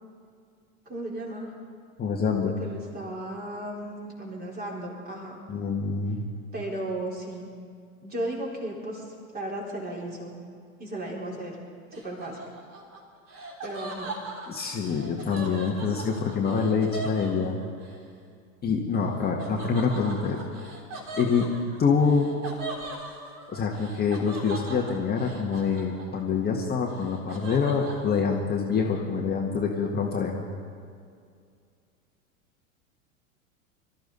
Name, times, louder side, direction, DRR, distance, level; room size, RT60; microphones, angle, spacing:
voice 1, 0.9-1.5 2.4-5.4 6.5-7.5 8.0-10.3 10.8-11.6 11.9-12.4 13.6-14.2, right 1 dB, 20° right, -2 dB, 4.0 m, -35 dB
voice 2, 2.0-2.5 5.5-6.3 14.5-17.6 18.6-20.4 21.2-21.5 21.8-22.3 23.5-30.4, left 5 dB, 25° left, 0 dB, 1.6 m, -26 dB
Laughter, 11.9-18.0 19.4-26.4 26.7-28.1, right 2 dB, 35° right, 3.8 m, -40 dB
23.5 x 13.0 x 4.0 m, 2.3 s
figure-of-eight pair, 90°, 42 cm